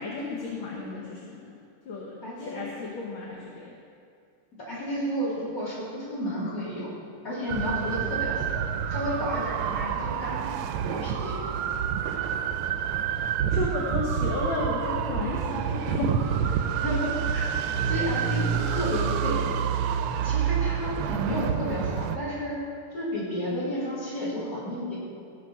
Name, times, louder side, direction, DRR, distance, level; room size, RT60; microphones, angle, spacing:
voice 1, 0.0-1.6 1.9-3.7 13.5-16.6, left 3 dB, 65° left, -3 dB, 1.9 m, -33 dB
voice 2, 2.2-2.6 4.7-6.9 7.2-8.6 8.9-10.5 10.9-11.4 16.8-17.5 17.8-19.5 20.2-22.6 22.9-25.0, equal, 40° left, -8 dB, 3.9 m, -31 dB
sound 1, 7.5-22.2, right 8 dB, 90° right, 1.5 m, -28 dB
16.0 x 5.5 x 5.8 m, 2.5 s
omnidirectional pair, 2.4 m